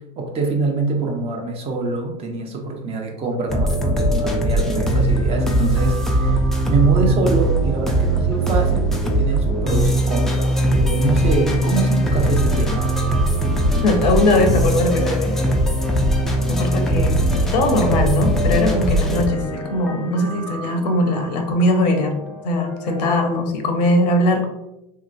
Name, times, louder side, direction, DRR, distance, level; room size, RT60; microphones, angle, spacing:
voice 1, 0.2-12.9, right 3 dB, 30° right, 2 dB, 0.6 m, -24 dB
sound 1, 3.5-23.2, right 1 dB, ahead, 0.3 m, -20 dB
voice 2, 13.8-15.4 16.5-22.1 22.4-24.5, left 1 dB, 80° left, 4 dB, 0.7 m, -20 dB
3.0 x 2.8 x 2.5 m, 0.90 s
supercardioid pair, 115°, 21 cm